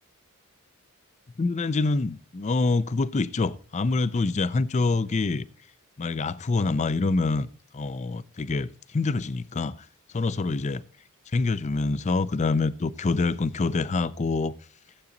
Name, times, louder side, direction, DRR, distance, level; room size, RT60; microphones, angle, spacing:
voice 1, 1.4-5.5 6.0-9.8 10.1-10.8 11.3-14.5, left 3 dB, 30° left, 0.4 m, -26 dB
14.5 x 8.2 x 3.8 m
head